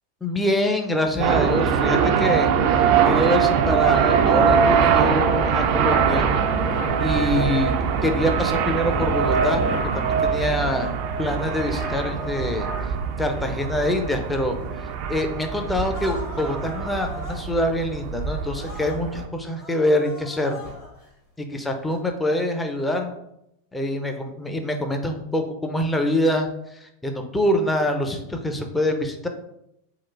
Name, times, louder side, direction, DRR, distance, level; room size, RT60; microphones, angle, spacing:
voice 1, 0.2-6.3 7.0-7.7 8.0-9.6 9.9-10.9 11.2-12.7 13.2-20.6 21.4-23.1 23.7-29.3, left 1 dB, 10° left, 4 dB, 0.6 m, -25 dB
sound 1, 1.2-19.3, right 7 dB, 45° right, 0.4 m, -22 dB
sound 2, 15.9-17.5 18.6-19.0 19.4-21.1 21.8-22.0, left 2 dB, 45° left, 1.4 m, -39 dB
3.8 x 2.5 x 4.5 m, 0.81 s
figure-of-eight pair, 90°, 0 cm